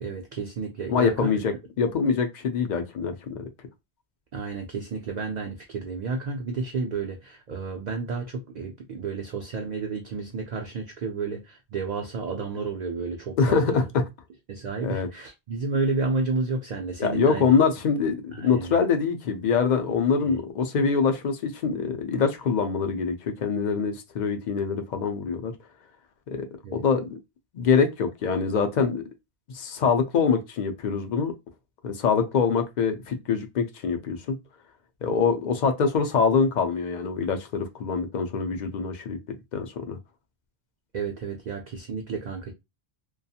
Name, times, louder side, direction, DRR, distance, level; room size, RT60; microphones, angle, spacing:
voice 1, 0.0-1.4 4.3-13.6 14.5-17.5 18.3-18.8 20.2-20.4 26.6-26.8 40.9-42.5, right 4 dB, 55° right, 0.5 m, -31 dB
voice 2, 0.9-3.4 13.4-14.0 14.8-15.1 17.0-25.5 26.3-26.5 26.7-27.2 27.5-29.0 29.5-31.3 31.8-34.3 35.0-40.0, left 5 dB, 55° left, 0.5 m, -24 dB
2.4 x 2.3 x 2.7 m
omnidirectional pair, 1.1 m